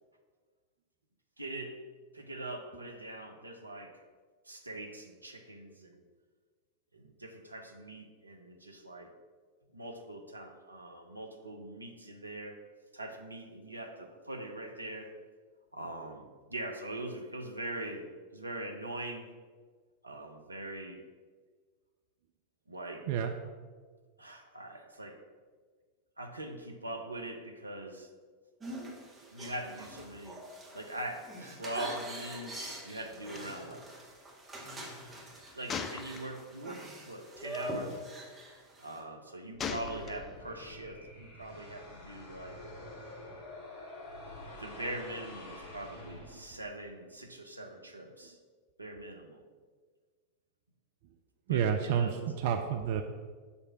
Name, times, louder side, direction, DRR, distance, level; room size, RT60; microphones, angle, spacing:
voice 1, 1.4-1.8 2.1-4.0 4.5-6.0 6.9-9.1 9.7-12.6 12.9-15.1 15.7-19.3 20.0-21.0 22.7-23.1 24.2-25.2 26.2-28.1 29.3-30.4 30.7-32.5 32.8-33.9 35.5-38.0 38.8-42.6 44.5-48.4 48.8-49.4 51.5-52.7, right 1 dB, 85° right, 4 dB, 0.7 m, -42 dB
sound 1, 28.6-39.0, right 1 dB, 15° right, 1.6 m, -44 dB
Gunshot gunfire, 33.4-33.5 33.7-33.9 35.7-36.7 37.4-37.6 39.6-40.5, left 6 dB, 25° left, 0.4 m, -39 dB
sound 2, 39.5-46.8, left 2 dB, 45° left, 1.7 m, -48 dB
voice 2, 51.5-53.0, right 8 dB, 50° right, 5 dB, 0.4 m, -29 dB
7.0 x 3.3 x 6.0 m, 1.5 s
figure-of-eight pair, 90°, 0 cm